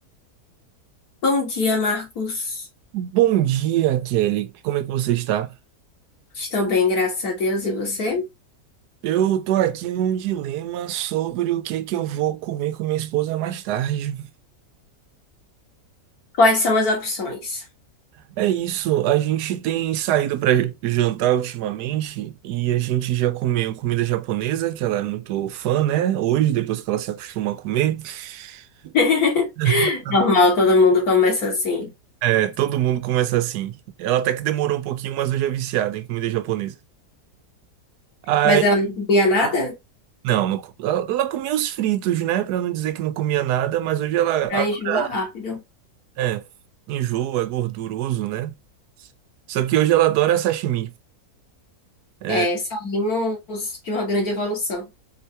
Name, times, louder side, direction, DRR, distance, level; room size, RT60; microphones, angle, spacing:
voice 1, 1.2-2.7 6.4-8.3 16.4-17.6 28.9-31.9 38.4-39.7 44.5-45.6 52.3-54.9, left 2 dB, 70° left, 2.4 m, -21 dB
voice 2, 2.9-5.5 9.0-14.3 18.4-28.9 29.6-30.2 32.2-36.7 38.3-38.6 40.2-45.1 46.2-46.4 46.9-48.5 49.5-50.9 52.2-52.5, right 12 dB, 85° right, 1.2 m, -23 dB
4.7 x 3.3 x 2.8 m
omnidirectional pair, 1.7 m